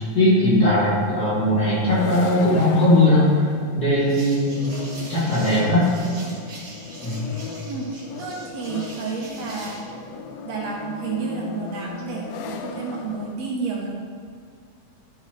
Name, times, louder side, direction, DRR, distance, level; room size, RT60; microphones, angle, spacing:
voice 1, 0.1-5.8 7.0-7.2, left 1 dB, 35° left, -9 dB, 2.2 m, -19 dB
sound 1, 1.4-13.4, left 5 dB, 85° left, 1.4 m, -37 dB
sound 2, 4.0-9.9, right 2 dB, 45° right, 2.3 m, -43 dB
voice 2, 8.2-9.9 10.4-13.9, right 4 dB, 70° right, -2 dB, 2.0 m, -30 dB
12.5 x 5.4 x 3.0 m, 2.2 s
omnidirectional pair, 3.4 m